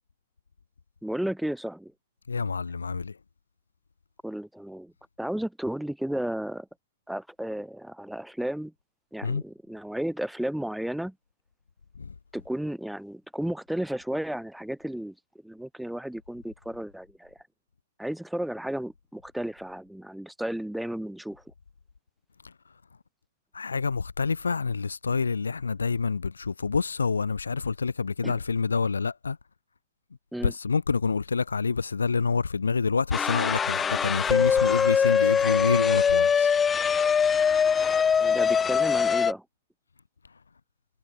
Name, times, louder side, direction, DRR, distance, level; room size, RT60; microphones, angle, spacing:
voice 1, 1.0-1.9 4.2-4.9 5.2-6.7 7.1-8.7 9.1-11.1 12.3-15.1 15.4-17.4 18.0-21.4 28.2-28.4 30.3-30.5 38.2-39.4, right 1 dB, ahead, 3.1 m, -33 dB
voice 2, 2.3-3.1 9.2-9.4 23.5-29.4 30.4-36.5, left 5 dB, 85° left, 0.9 m, -27 dB
sound 1, 33.1-39.3, left 6 dB, 15° left, 0.5 m, -22 dB
hypercardioid pair, 120°, 0 cm